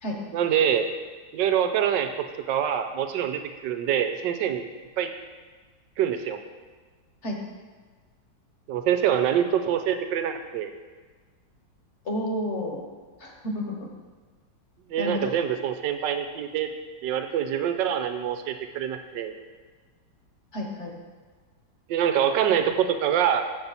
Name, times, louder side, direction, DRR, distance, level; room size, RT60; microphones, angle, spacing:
voice 1, 0.3-0.9 1.3-2.1 2.5-4.6 5.0-5.1 6.0-6.4 8.7-10.7 14.9-16.7 17.0-19.3 21.9-23.4, right 9 dB, 85° right, 8 dB, 1.3 m, -25 dB
voice 2, 12.0-12.9 13.2-13.9 15.0-15.3 20.5-20.9, left 1 dB, 45° left, 0 dB, 1.2 m, -30 dB
7.4 x 7.1 x 4.0 m, 1.4 s
omnidirectional pair, 2.0 m